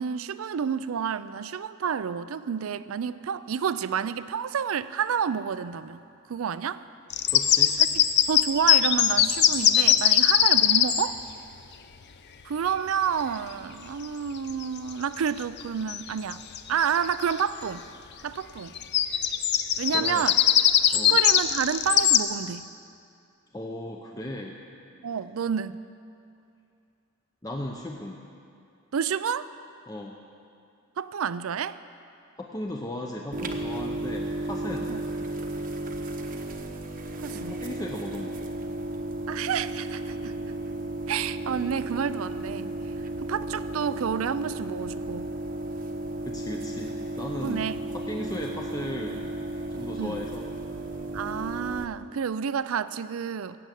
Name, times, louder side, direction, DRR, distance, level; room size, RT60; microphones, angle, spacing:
voice 1, 0.0-6.0 6.3-6.8 7.8-7.9 8.3-11.2 12.4-16.4 16.7-17.8 18.2-18.8 19.8-20.4 20.9-22.6 25.0-25.8 28.9-29.5 31.0-31.8 34.9-35.0 37.2-37.6 39.3-40.4 41.1-42.7 43.2-45.3 47.4-47.8 50.0-50.2 51.1-53.6, right 7 dB, 75° right, 15 dB, 0.4 m, -29 dB
sound 1, 7.1-11.1 14.5-14.6 15.2-15.6 15.9-16.0 16.3-17.4 18.8-22.2, left 10 dB, 55° left, 0.6 m, -21 dB
voice 2, 7.3-7.8 19.9-20.3 20.9-21.2 23.5-24.6 27.4-28.2 29.9-30.2 32.4-34.9 37.3-38.5 46.2-49.3 49.7-50.5, left 1 dB, 15° left, 1 dB, 0.7 m, -36 dB
sound 2, 33.3-51.9, right 2 dB, 40° right, 0.9 m, -34 dB
16.5 x 7.7 x 8.3 m, 2.5 s
head